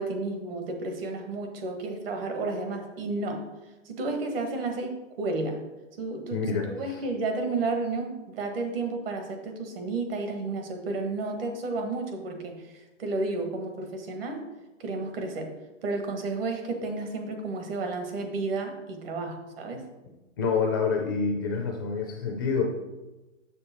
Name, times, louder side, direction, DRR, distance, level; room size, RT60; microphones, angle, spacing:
voice 1, 0.0-3.4 3.8-5.6 6.0-6.4 6.7-12.7 13.0-14.4 14.8-15.5 15.8-19.8, right 3 dB, 45° right, 4 dB, 1.6 m, -32 dB
voice 2, 6.3-7.0 20.4-22.7, left 5 dB, 20° left, 1 dB, 0.5 m, -27 dB
6.9 x 6.8 x 4.3 m, 1.1 s
hypercardioid pair, 155°, 39 cm